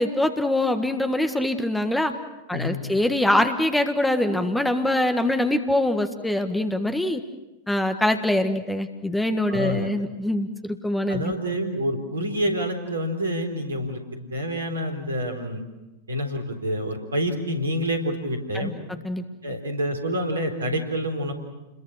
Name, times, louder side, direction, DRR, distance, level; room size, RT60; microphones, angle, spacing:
voice 1, 0.0-2.1 2.5-7.2 7.7-11.3 18.5-18.7 19.0-19.2, left 1 dB, 5° left, 8 dB, 1.6 m, -23 dB
voice 2, 2.5-2.8 9.5-9.9 11.1-14.0 14.3-15.6 16.1-18.7 19.4-21.3, equal, 75° right, 6 dB, 3.9 m, -27 dB
30.0 x 21.5 x 6.4 m, 1.0 s
figure-of-eight pair, 90°, 0 cm